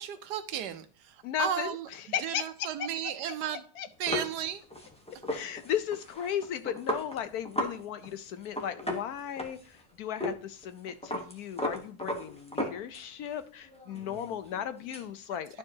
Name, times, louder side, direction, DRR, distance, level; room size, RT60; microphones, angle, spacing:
voice 1, 0.0-1.9 2.2-3.6 4.0-4.6, right 10 dB, 70° right, 10 dB, 1.1 m, -34 dB
voice 2, 1.2-2.7 3.0-3.1 3.5-3.9 5.3-15.6, left 9 dB, 70° left, 11 dB, 1.0 m, -36 dB
sound 1, 4.1-7.8 8.0-8.1 8.4-9.8 10.2-10.4 10.6-13.3 13.6-15.1, left 1 dB, 5° left, 0.7 m, -35 dB
11.5 x 4.7 x 2.7 m, 0.42 s
omnidirectional pair, 1.9 m